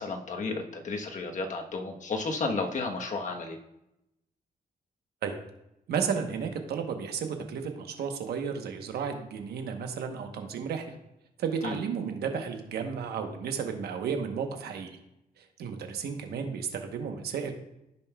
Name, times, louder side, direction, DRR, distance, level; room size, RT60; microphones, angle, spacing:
voice 1, 0.0-3.6 11.6-11.8, left 3 dB, 50° left, 3 dB, 1.1 m, -32 dB
voice 2, 5.9-11.0 11.4-14.9 15.4-17.5, right 6 dB, 85° right, 5 dB, 1.0 m, -33 dB
15.5 x 5.4 x 2.3 m, 0.87 s
cardioid pair, 80°, 16 cm